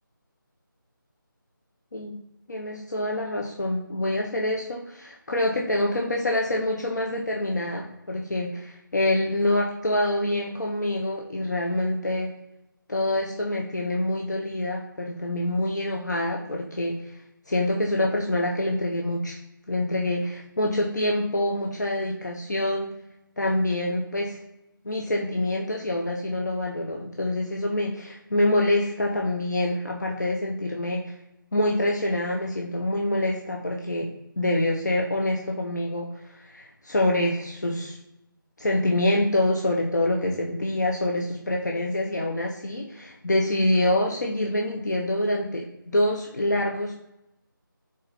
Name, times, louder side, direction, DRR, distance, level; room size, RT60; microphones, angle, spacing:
voice 1, 2.5-12.3 12.9-17.0 17.5-19.4 19.7-22.9 23.4-24.4 24.8-31.0 31.5-38.0 38.6-46.9, left 1 dB, 55° left, -1 dB, 0.8 m, -26 dB
4.0 x 3.9 x 3.1 m, 0.86 s
figure-of-eight pair, 160°, 11 cm